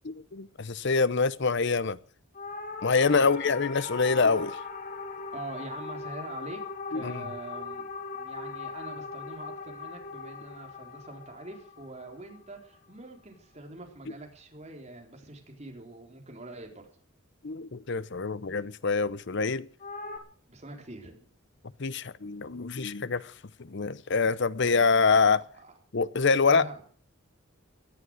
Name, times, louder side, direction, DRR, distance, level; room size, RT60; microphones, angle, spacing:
voice 1, 0.1-2.0 2.8-4.6 6.9-7.2 17.4-19.7 21.8-23.3 23.6-25.4 25.9-26.7, left 4 dB, 55° left, 0.7 m, -25 dB
sound 1, 2.3-12.9 19.8-20.2, left 4 dB, 40° left, 2.2 m, -40 dB
voice 2, 3.0-3.3 5.3-6.6 6.9-7.9 8.2-16.9 20.5-21.2 25.6-25.7 26.4-26.8, right 2 dB, 30° right, 4.1 m, -44 dB
17.5 x 11.5 x 6.3 m
head